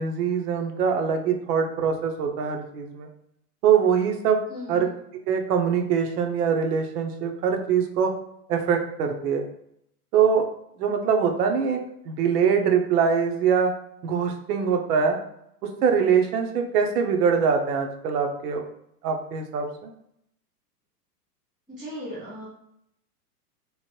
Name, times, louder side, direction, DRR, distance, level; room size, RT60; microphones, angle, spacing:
voice 1, 0.0-3.1 3.6-4.4 4.7-4.9 5.3-8.1 8.5-9.4 10.1-10.4 10.8-11.8 12.1-13.7 14.0-15.2 15.8-18.6 19.0-19.9, right 6 dB, 75° right, 4 dB, 0.7 m, -23 dB
voice 2, 4.5-4.9 21.7-22.5, equal, ahead, -13 dB, 0.3 m, -37 dB
3.0 x 2.1 x 3.0 m, 0.75 s
hypercardioid pair, 135°, 47 cm